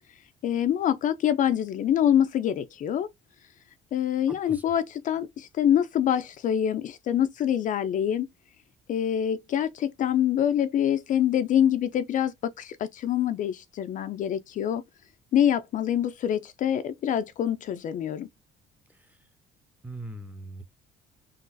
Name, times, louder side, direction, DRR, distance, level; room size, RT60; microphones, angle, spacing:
voice 1, 0.4-3.1 3.9-8.3 8.9-14.8 15.3-18.3, left 10 dB, 50° left, 0.4 m, -25 dB
voice 2, 4.3-4.6 19.8-20.6, right 1 dB, 10° right, 0.7 m, -40 dB
3.8 x 2.4 x 2.5 m
cardioid pair, 110°, 17 cm